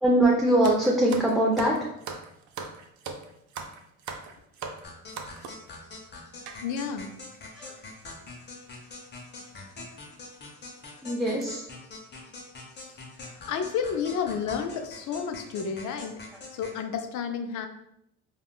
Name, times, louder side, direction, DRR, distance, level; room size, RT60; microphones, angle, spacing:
voice 1, 0.0-1.9 7.5-7.7 11.0-11.6, right 1 dB, ahead, -4 dB, 0.4 m, -22 dB
sound 1, 0.6-5.7 6.5-6.6 7.3-7.4 7.6-7.8 8.8-9.0 9.4-9.6 10.1-10.2 10.6-10.8 11.2-11.4, right 5 dB, 70° right, 0.5 m, -39 dB
sound 2, 4.8-16.8, left 3 dB, 35° left, 0.7 m, -44 dB
voice 2, 6.6-7.1 13.2-16.2 16.5-17.7, left 6 dB, 80° left, 7 dB, 0.5 m, -31 dB
3.5 x 2.3 x 2.2 m, 0.79 s
cardioid pair, 90°, 30 cm